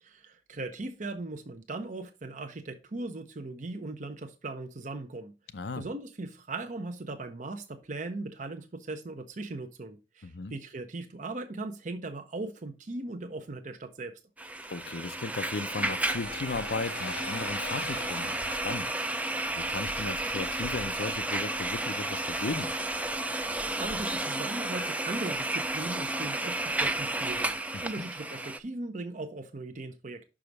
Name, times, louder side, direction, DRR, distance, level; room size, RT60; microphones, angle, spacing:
voice 1, 0.0-5.3 5.8-14.1 23.3-30.2, right 2 dB, 45° right, 0.7 m, -39 dB
voice 2, 5.5-5.8 10.2-10.5 14.7-18.9 19.1-22.7 27.7-28.0, left 3 dB, 75° left, 0.6 m, -36 dB
sound 1, 14.4-28.6, right 2 dB, 10° right, 0.4 m, -32 dB
sound 2, 16.0-24.3, left 3 dB, 90° left, 1.3 m, -45 dB
6.0 x 4.9 x 5.2 m
head